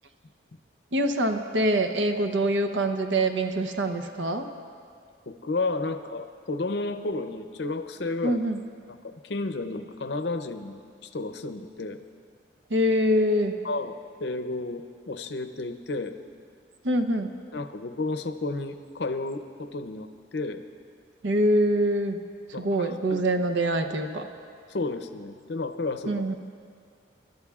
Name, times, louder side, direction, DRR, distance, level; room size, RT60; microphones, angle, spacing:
voice 1, 0.9-4.5 8.2-8.6 12.7-13.6 16.8-17.4 21.2-22.2 22.6-24.3 26.1-26.3, right 1 dB, 75° right, 5 dB, 0.8 m, -24 dB
voice 2, 5.3-8.4 8.9-12.0 13.6-16.2 17.5-20.6 22.5-23.2 24.7-26.2, left 3 dB, 65° left, 9 dB, 0.6 m, -32 dB
26.5 x 12.0 x 2.4 m, 2.2 s
head